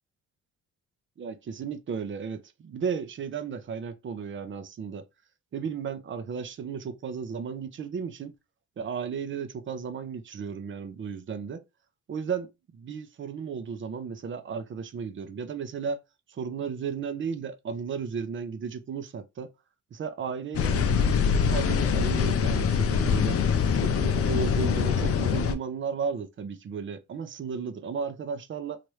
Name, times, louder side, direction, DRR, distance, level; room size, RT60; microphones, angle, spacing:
voice 1, 1.2-5.0 5.5-8.3 8.8-11.6 12.1-16.0 16.3-19.5 19.9-23.4 23.7-28.8, right 6 dB, 40° right, 0.6 m, -34 dB
sound 1, 20.5-25.5, left 6 dB, 50° left, 0.5 m, -24 dB
3.1 x 2.5 x 3.1 m
cardioid pair, 90°, 30 cm